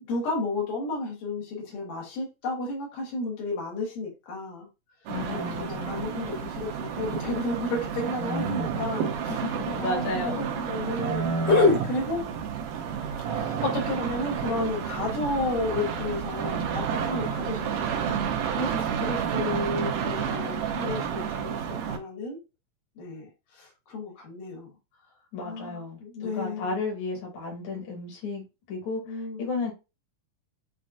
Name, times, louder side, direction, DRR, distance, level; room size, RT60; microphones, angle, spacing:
voice 1, 0.1-4.7 5.3-9.5 9.8-12.2 13.3-21.6 21.9-22.4 23.0-23.3 23.6-24.7 25.4-26.7 29.1-29.5, left 3 dB, 85° left, -2 dB, 3.0 m, -31 dB
voice 2, 5.1-6.1 9.3-10.4 25.3-28.4 28.7-29.7, left 3 dB, 65° left, -3 dB, 2.7 m, -33 dB
sound 1, 5.1-22.0, right 7 dB, 85° right, 2.4 m, -30 dB
7.3 x 2.5 x 2.5 m, 0.28 s
omnidirectional pair, 3.7 m